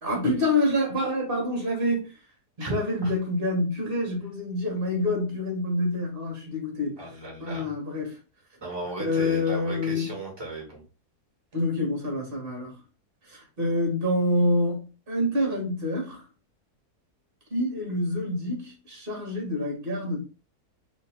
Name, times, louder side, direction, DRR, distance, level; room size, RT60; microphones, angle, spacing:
voice 1, 0.0-2.1 2.6-7.0 7.4-8.2 9.0-10.1 11.5-12.8 13.3-16.2 17.5-20.2, left 1 dB, 35° right, 1.8 m, -27 dB
voice 2, 7.0-7.7 8.6-10.8, right 2 dB, 15° right, 2.0 m, -36 dB
4.0 x 3.2 x 3.6 m
omnidirectional pair, 1.7 m